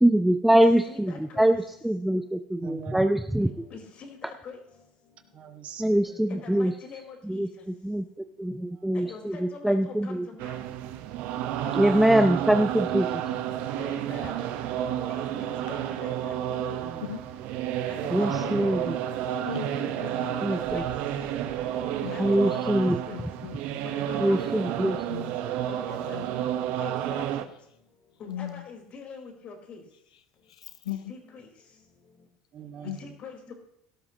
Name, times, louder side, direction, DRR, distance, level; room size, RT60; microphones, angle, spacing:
voice 1, 0.0-3.5 5.8-6.7 7.2-8.0 8.4-10.3 11.7-13.2 18.1-19.0 20.4-20.8 22.2-23.0 24.2-25.0, right 1 dB, 5° right, 0.7 m, -23 dB
voice 2, 0.9-1.5 3.7-4.6 6.3-7.5 8.9-10.6 11.6-12.5 13.8-14.3 15.1-16.8 17.9-19.2 20.0-20.9 22.1-23.2 23.9-24.5 25.8-26.2 26.8-27.3 28.2-29.8 30.9-31.4 33.0-33.5, left 5 dB, 45° left, 4.4 m, -44 dB
voice 3, 2.6-3.3 5.3-6.3 8.4-9.2 16.8-17.3 32.5-33.2, right 8 dB, 45° right, 2.0 m, -45 dB
sound 1, 10.4-27.4, right 11 dB, 60° right, 1.2 m, -31 dB
voice 4, 19.3-20.5 22.0-22.8 23.1-23.6 25.1-25.4 26.1-26.2 28.3-28.6 30.5-31.1 32.8-33.0, left 11 dB, 85° left, 0.7 m, -38 dB
17.5 x 12.5 x 3.0 m
hypercardioid pair, 80°, 3 cm